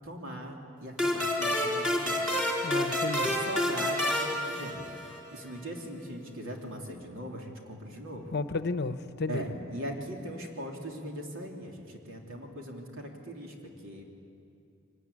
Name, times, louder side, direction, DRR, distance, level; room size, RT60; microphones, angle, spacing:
voice 1, 0.0-2.4 3.3-5.0 5.3-8.3 9.3-13.5 13.8-14.0, equal, 65° right, 0 dB, 3.4 m, -40 dB
sound 1, 1.0-5.3, left 1 dB, 5° right, 3.4 m, -29 dB
voice 2, 2.6-3.3 8.3-9.4, left 3 dB, 50° left, 11 dB, 0.8 m, -32 dB
24.0 x 18.5 x 9.9 m, 2.5 s
head